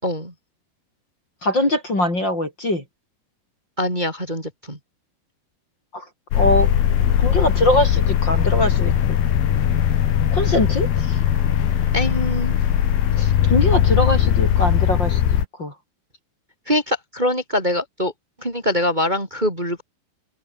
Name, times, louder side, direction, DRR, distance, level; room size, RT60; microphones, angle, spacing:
voice 1, 0.0-0.3 3.8-4.8 11.9-12.5 16.7-18.1 18.4-19.8, left 1 dB, 10° right, 5.7 m, -23 dB
voice 2, 1.4-2.8 5.9-6.0 6.3-6.7 7.2-9.2 10.3-11.2 13.2-15.2 15.6-15.7, left 1 dB, 25° left, 6.4 m, -22 dB
sound 1, 6.3-15.4, left 10 dB, 70° left, 3.9 m, -19 dB
open air
omnidirectional pair, 4.8 m